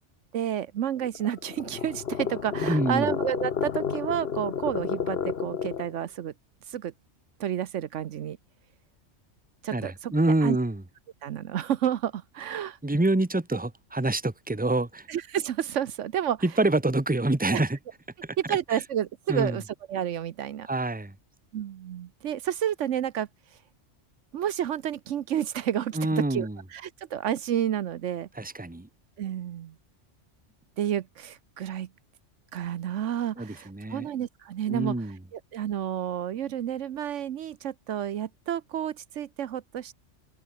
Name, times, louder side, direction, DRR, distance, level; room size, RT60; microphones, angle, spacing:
voice 1, 0.3-6.3 6.7-6.9 7.4-8.4 9.6-10.1 10.4-10.6 11.2-12.8 15.1-16.4 17.5-17.6 18.4-19.6 19.9-20.7 21.5-23.3 24.3-28.3 29.2-29.7 30.8-31.9 32.5-35.1 35.3-39.9, right 10 dB, 75° right, 1.1 m, -30 dB
sound 1, 1.0-6.0, left 7 dB, 55° left, 1.3 m, -31 dB
voice 2, 2.6-3.1 9.7-10.8 12.8-15.1 16.4-17.8 18.5-18.6 19.3-19.6 20.7-21.1 25.9-26.6 28.4-28.9 33.4-34.1 34.7-35.2, right 2 dB, 5° right, 1.2 m, -26 dB
omnidirectional pair, 1.3 m